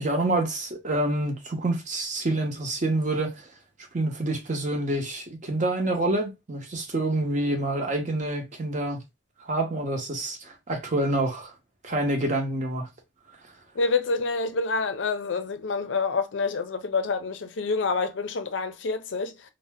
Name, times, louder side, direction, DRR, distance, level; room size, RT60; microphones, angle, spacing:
voice 1, 0.0-3.5 3.9-9.0 9.5-11.5 11.8-12.9, right 2 dB, 40° right, 0.8 m, -27 dB
voice 2, 13.8-19.5, left 4 dB, 70° left, 0.5 m, -27 dB
2.7 x 2.1 x 3.3 m
head